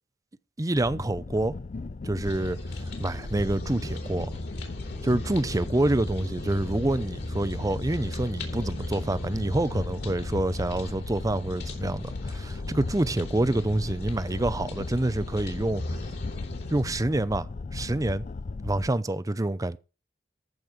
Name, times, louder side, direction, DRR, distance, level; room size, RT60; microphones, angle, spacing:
voice 1, 0.6-1.5 2.0-2.6 3.0-4.3 5.0-15.8 16.7-17.5 17.7-18.2 18.6-19.8, right 1 dB, 20° right, 0.6 m, -27 dB
sound 1, 0.7-18.9, left 3 dB, 40° left, 0.5 m, -37 dB
sound 2, 2.2-16.8, left 1 dB, 60° left, 3.6 m, -38 dB
14.5 x 5.3 x 6.1 m
head